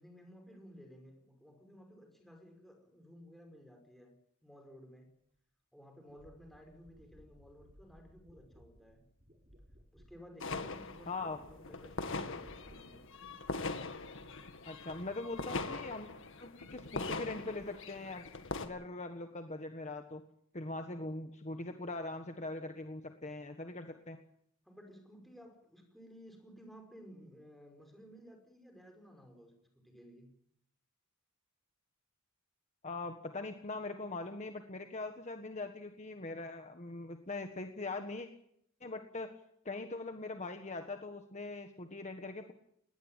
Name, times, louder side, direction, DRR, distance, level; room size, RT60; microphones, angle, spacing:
voice 1, 0.0-4.1 4.4-5.1 5.7-9.0 9.9-13.0 24.6-30.3, equal, ahead, 4 dB, 5.3 m, -56 dB
sound 1, 5.3-5.4 6.1-15.8 16.0-16.9 17.2-18.1 18.3-18.8, equal, 35° right, 3.9 m, -62 dB
sound 2, 10.4-18.7, left 3 dB, 65° left, 2.0 m, -41 dB
voice 2, 11.1-11.4 14.6-16.1 16.4-18.2 18.6-20.2 20.5-24.2 32.8-38.3 38.8-39.3 39.6-42.5, left 2 dB, 35° left, 6 dB, 1.5 m, -41 dB
20.0 x 17.5 x 9.0 m, 0.71 s
head